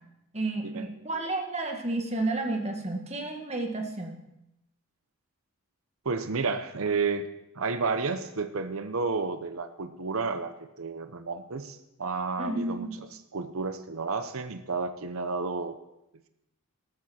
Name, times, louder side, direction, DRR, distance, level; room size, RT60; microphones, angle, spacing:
voice 1, 0.3-4.2 12.4-12.9, right 2 dB, 30° right, 3 dB, 1.6 m, -31 dB
voice 2, 6.0-7.3 7.6-10.5 10.8-12.9 13.3-15.7, right 4 dB, 70° right, 9 dB, 0.8 m, -31 dB
13.5 x 13.0 x 4.3 m, 0.87 s
head